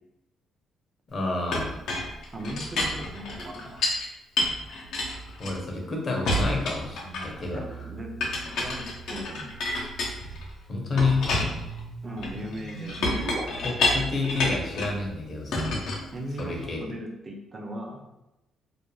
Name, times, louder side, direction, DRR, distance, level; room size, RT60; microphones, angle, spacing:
voice 1, 1.1-1.8 5.4-7.9 10.7-11.3 13.6-15.9 16.4-16.8, left 3 dB, 45° left, 0 dB, 0.7 m, -29 dB
Chink clink, 1.5-4.1 4.4-5.9 6.3-7.5 8.2-10.5 11.0-15.0 15.5-16.7, left 2 dB, 80° left, 0.6 m, -29 dB
voice 2, 2.3-3.8 7.5-8.1 8.6-9.5 12.0-13.0 14.3-14.6 16.1-18.1, equal, 30° right, 1 dB, 0.5 m, -38 dB
sound 1, 7.4-13.4, right 3 dB, 70° right, 0.6 m, -42 dB
2.4 x 2.1 x 3.0 m, 0.93 s
cardioid pair, 90°, 0 cm